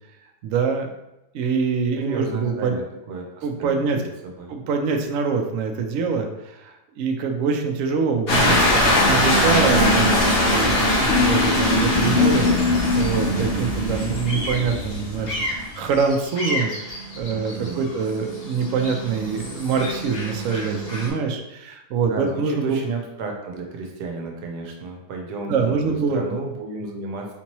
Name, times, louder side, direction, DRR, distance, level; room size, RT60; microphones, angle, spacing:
voice 1, 0.4-0.9 1.3-2.7 3.4-4.0 4.5-22.8 25.5-26.2, right 5 dB, 70° right, 4 dB, 0.8 m, -25 dB
voice 2, 1.9-4.5 17.3-17.9 22.1-27.3, right 3 dB, 85° right, 1 dB, 1.3 m, -32 dB
sound 1, 8.3-21.1, left 1 dB, 45° left, 0.9 m, -22 dB
4.4 x 2.9 x 2.9 m, 0.91 s
omnidirectional pair, 1.8 m